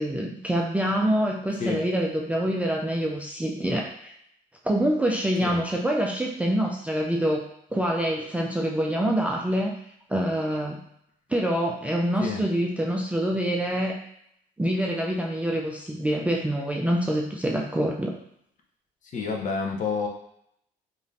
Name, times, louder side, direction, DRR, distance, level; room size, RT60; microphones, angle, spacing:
voice 1, 0.0-4.1 4.6-9.8 10.1-10.8 11.3-14.0 14.6-18.1, right 1 dB, 10° right, -2 dB, 0.3 m, -26 dB
voice 2, 19.0-20.1, left 5 dB, 50° left, 0 dB, 0.7 m, -29 dB
3.2 x 2.5 x 2.6 m, 0.73 s
cardioid pair, 110°, 17 cm